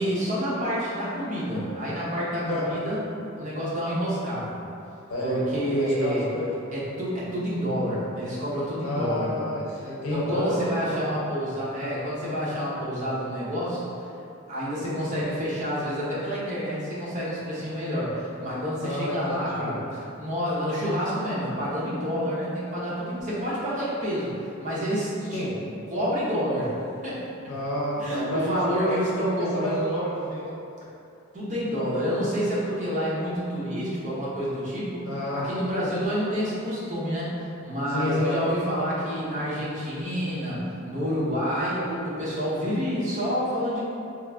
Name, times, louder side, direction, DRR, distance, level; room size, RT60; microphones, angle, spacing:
voice 1, 0.0-3.0 3.4-4.6 5.2-6.3 6.7-9.4 10.1-13.8 14.5-25.5 25.9-26.8 27.0-27.2 28.0-30.0 31.3-43.8, equal, 35° right, -8 dB, 0.8 m, -28 dB
voice 2, 5.1-6.5 8.8-11.1 18.8-19.8 25.3-25.5 27.5-30.5 35.1-35.5 37.9-38.4 39.4-39.5, left 1 dB, 85° left, -5 dB, 0.7 m, -30 dB
3.1 x 2.4 x 3.4 m, 2.7 s
head